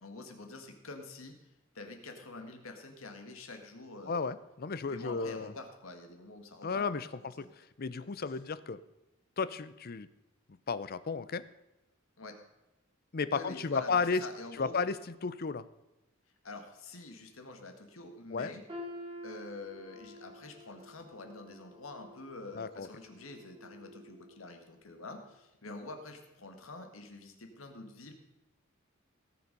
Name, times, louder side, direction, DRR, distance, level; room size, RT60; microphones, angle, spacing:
voice 1, 0.0-1.4 1.7-4.3 4.9-7.0 7.4-7.5 12.2-12.4 13.3-14.8 16.4-18.6 19.2-28.1, left 2 dB, 85° left, 5 dB, 1.9 m, -46 dB
voice 2, 4.1-5.5 6.6-8.8 9.4-10.1 10.7-11.4 13.1-14.2 14.6-15.6 18.3-18.5 22.6-22.9, left 4 dB, 50° left, 15 dB, 0.6 m, -33 dB
sound 1, 18.7-24.6 25.0-25.3 26.0-26.1, left 1 dB, 25° right, 2.4 m, -49 dB
17.5 x 7.1 x 5.3 m, 0.95 s
head